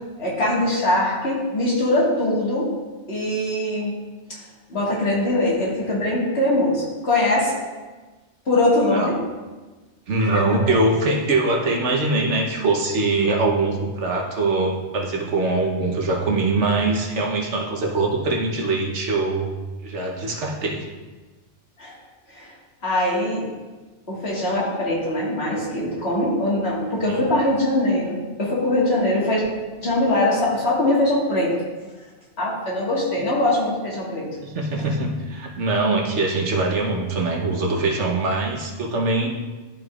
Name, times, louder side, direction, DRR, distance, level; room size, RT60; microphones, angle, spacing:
voice 1, 0.2-2.7 3.1-3.9 4.7-7.6 8.5-9.2 10.2-10.8 21.8-21.9 22.3-22.5 22.8-23.5 24.1-29.4 29.8-31.6 32.4-34.3 34.8-34.9, left 1 dB, 60° left, -5 dB, 2.1 m, -22 dB
voice 2, 10.1-19.5 19.8-20.9 27.1-27.2 34.4-39.3, right 2 dB, 75° right, 0 dB, 1.3 m, -22 dB
12.0 x 4.9 x 2.4 m, 1.2 s
omnidirectional pair, 1.2 m